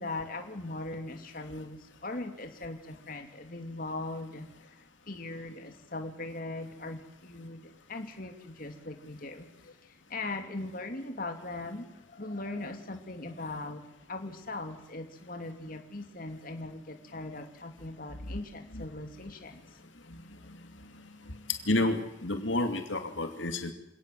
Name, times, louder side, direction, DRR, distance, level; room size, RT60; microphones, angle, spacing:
voice 1, 0.0-4.8 5.1-9.5 9.8-13.8 14.1-19.7, left 2 dB, 50° left, 5 dB, 2.7 m, -40 dB
voice 2, 21.7-23.7, left 2 dB, 80° left, 6 dB, 2.7 m, -29 dB
27.5 x 18.0 x 7.8 m, 0.88 s
head